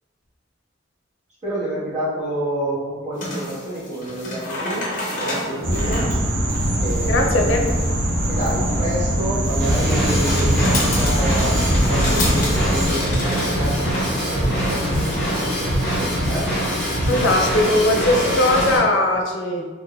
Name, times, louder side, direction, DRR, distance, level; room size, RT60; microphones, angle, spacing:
voice 1, 1.4-6.1 6.8-7.3 8.3-16.5, right 1 dB, 35° right, -9 dB, 1.2 m, -29 dB
sound 1, 3.1-15.6, left 1 dB, 45° left, 0.8 m, -31 dB
sound 2, 5.6-12.9, equal, 75° right, 0.8 m, -22 dB
voice 2, 7.1-7.6 17.1-19.7, left 1 dB, 80° left, 2 dB, 0.5 m, -19 dB
Drum kit / Drum, 9.6-18.8, equal, 5° left, 1.1 m, -23 dB
3.9 x 2.9 x 2.2 m, 1.4 s
head